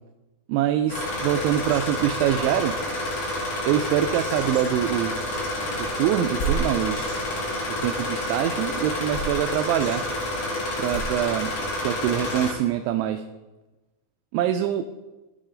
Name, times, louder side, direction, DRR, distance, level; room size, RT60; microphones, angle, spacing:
voice 1, 0.5-2.8 3.7-5.2 5.8-7.0 7.8-10.0 10.8-11.5 11.8-13.2 14.3-14.9, right 11 dB, 85° right, 7 dB, 2.8 m, -24 dB
sound 1, 0.9-12.5, left 1 dB, 45° left, 2.6 m, -29 dB
sound 2, 5.7-6.7 8.4-8.8 9.1-9.4 9.7-10.3 10.8-12.4, right 4 dB, 85° left, 5.7 m, -32 dB
17.5 x 6.4 x 5.1 m, 1.1 s
omnidirectional pair, 5.5 m